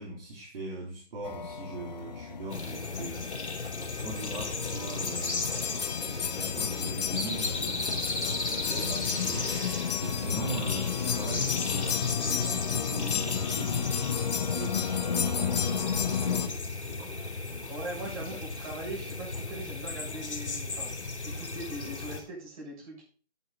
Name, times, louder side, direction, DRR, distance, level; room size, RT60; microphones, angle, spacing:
voice 1, 0.0-3.5 3.9-5.5 6.3-7.8 8.7-14.0 14.5-17.7 18.2-18.4, right 2 dB, 55° right, -5 dB, 4.2 m, -40 dB
sound 1, 1.2-16.5, left 7 dB, 40° left, 0.8 m, -32 dB
sound 2, 2.5-22.2, left 3 dB, 75° left, 3.2 m, -35 dB
voice 2, 8.5-8.9 17.7-23.0, right 2 dB, 30° right, -5 dB, 7.2 m, -41 dB
11.0 x 8.5 x 4.2 m, 0.39 s
hypercardioid pair, 160°, 34 cm